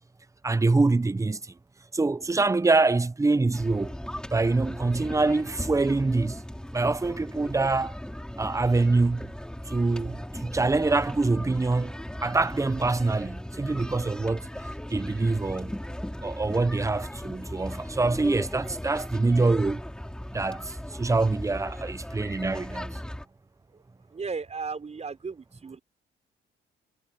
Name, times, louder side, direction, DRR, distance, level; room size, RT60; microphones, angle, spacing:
voice 1, 0.4-1.4 1.9-4.0 4.3-6.4 6.7-8.0 8.4-9.3 9.7-14.5 14.9-15.8 16.2-19.8 20.3-23.0, right 3 dB, 15° right, 0.8 m, -25 dB
sound 1, 3.5-23.3, equal, 5° left, 5.5 m, -37 dB
voice 2, 24.1-25.8, right 4 dB, 35° right, 5.0 m, -35 dB
cardioid pair, 90°, 20 cm